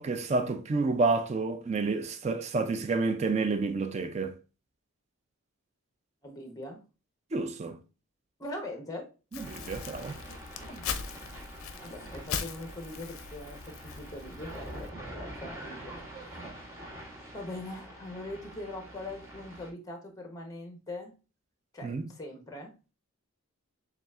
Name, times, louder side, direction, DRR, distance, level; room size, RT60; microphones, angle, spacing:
voice 1, 0.0-4.3 7.3-7.8 9.4-10.2 21.8-22.0, right 3 dB, 30° right, 0.3 m, -29 dB
voice 2, 6.2-6.8 8.4-9.1 10.7-10.9 11.8-16.0 17.3-21.1 21.7-22.9, left 1 dB, 15° left, 0.8 m, -42 dB
Crumpling crinkling, 9.3-14.9, left 7 dB, 75° left, 0.5 m, -40 dB
sound 1, 9.4-19.7, right 1 dB, 15° right, 1.0 m, -45 dB
6.8 x 2.4 x 2.4 m
head